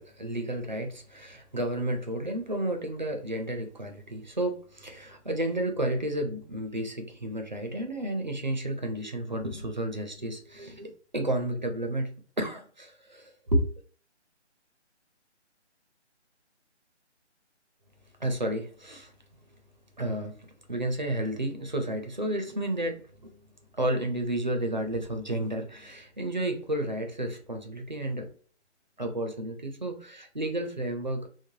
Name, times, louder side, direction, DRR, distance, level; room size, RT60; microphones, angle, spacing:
voice 1, 0.0-12.1 12.4-13.7 18.2-19.1 20.0-23.4 23.7-28.3 29.0-31.3, right 1 dB, 40° right, 0.4 m, -31 dB
3.1 x 2.1 x 2.6 m
hypercardioid pair, 175°, 35 cm